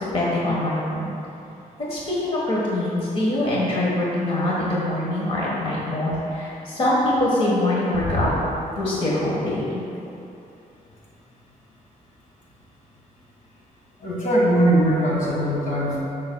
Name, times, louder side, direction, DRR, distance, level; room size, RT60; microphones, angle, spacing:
voice 1, 0.1-1.1 1.8-8.3 8.8-9.8, left 1 dB, 40° left, -6 dB, 1.4 m, -23 dB
voice 2, 14.0-16.0, right 1 dB, 60° left, -4 dB, 1.7 m, -20 dB
11.5 x 7.3 x 2.3 m, 2.7 s
wide cardioid pair, 170°, 15 cm